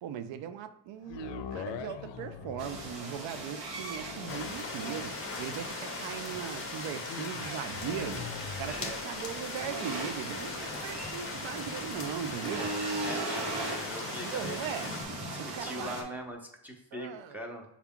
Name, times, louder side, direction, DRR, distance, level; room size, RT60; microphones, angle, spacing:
voice 1, 0.0-8.3 8.6-12.7 14.2-14.9 15.4-16.0 16.9-17.4, right 9 dB, 80° right, 0.5 m, -39 dB
sound 1, 1.0-15.2 15.8-15.9, left 8 dB, 70° left, 0.5 m, -46 dB
sound 2, 2.6-16.0, right 2 dB, 60° right, 1.1 m, -39 dB
sound 3, 4.3-15.0, left 5 dB, 30° left, 0.7 m, -40 dB
voice 2, 8.7-9.1 10.6-11.0 12.3-12.8 13.0-14.6 15.3-17.6, equal, 5° right, 0.7 m, -42 dB
5.8 x 2.4 x 3.6 m
cardioid pair, 125°, 44 cm